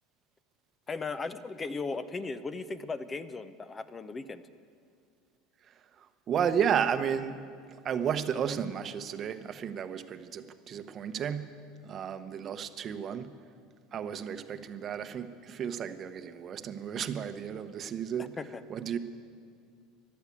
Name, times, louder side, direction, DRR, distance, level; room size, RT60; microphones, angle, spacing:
voice 1, 0.9-4.4 18.2-18.6, left 4 dB, 25° left, 13 dB, 0.6 m, -37 dB
voice 2, 5.6-7.4 7.7-11.5 11.8-13.3 13.9-18.3 18.7-19.0, right 8 dB, 40° right, 10 dB, 0.9 m, -33 dB
13.0 x 12.0 x 8.5 m, 2.2 s
supercardioid pair, 100°, 0 cm